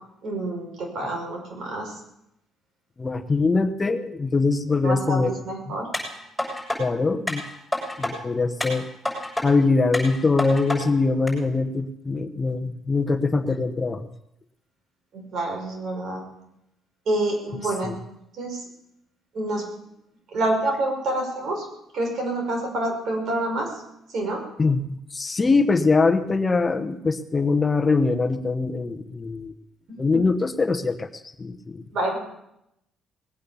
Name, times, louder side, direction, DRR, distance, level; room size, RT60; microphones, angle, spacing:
voice 1, 0.2-2.0 4.8-5.9 15.1-16.3 17.1-17.9 18.3-18.6 19.3-19.7 20.3-21.7 21.9-23.8 24.1-24.4 30.1-30.3 31.9-32.2, right 1 dB, 60° right, 2 dB, 5.5 m, -27 dB
voice 2, 3.0-5.3 6.8-7.5 8.0-8.9 9.4-14.1 17.8-17.9 24.6-29.5 30.0-31.8, left 3 dB, 25° left, 9 dB, 1.0 m, -23 dB
sound 1, 5.9-6.8 7.3-8.1 8.6-9.5 9.9-10.8 11.3-11.4, left 1 dB, 5° left, 6.9 m, -28 dB
20.0 x 9.0 x 7.0 m, 0.82 s
cardioid pair, 95°, 0 cm